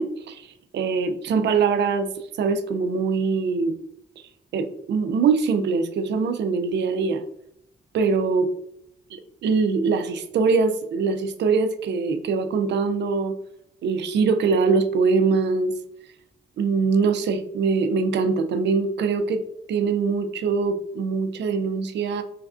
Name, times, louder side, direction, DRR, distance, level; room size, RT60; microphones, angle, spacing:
voice 1, 0.0-3.8 4.2-7.2 7.9-8.5 9.1-13.4 13.8-16.1 16.6-22.2, right 4 dB, 65° right, 9 dB, 0.4 m, -23 dB
3.1 x 2.4 x 2.3 m, 0.75 s
supercardioid pair, 55°, 20 cm